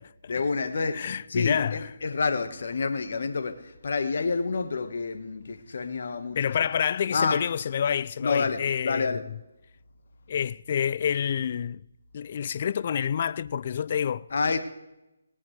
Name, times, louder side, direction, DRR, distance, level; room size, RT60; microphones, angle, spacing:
voice 1, 0.3-6.7 7.1-7.4 8.2-9.2 14.3-14.6, left 4 dB, 60° left, 1.5 m, -28 dB
voice 2, 0.9-1.9 6.4-9.2 10.3-11.8 12.1-14.3, left 8 dB, 45° left, 0.4 m, -28 dB
19.0 x 18.0 x 3.3 m
figure-of-eight pair, 150°, 0 cm